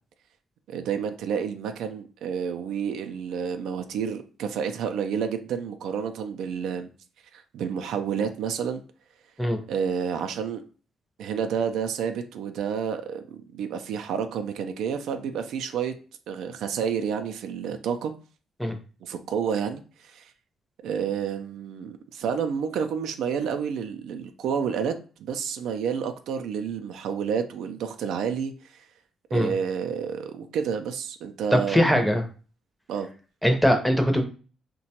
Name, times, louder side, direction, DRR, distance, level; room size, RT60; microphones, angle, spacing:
voice 1, 0.7-6.9 7.3-8.8 9.7-10.6 11.2-15.9 16.3-18.1 19.0-20.3 20.8-24.9 25.2-28.8 29.3-31.9 32.9-33.1, right 7 dB, 80° right, 0.3 m, -29 dB
voice 2, 31.5-32.2 33.4-34.2, equal, ahead, 0.6 m, -21 dB
2.8 x 2.2 x 2.8 m
cardioid pair, 90°, 0 cm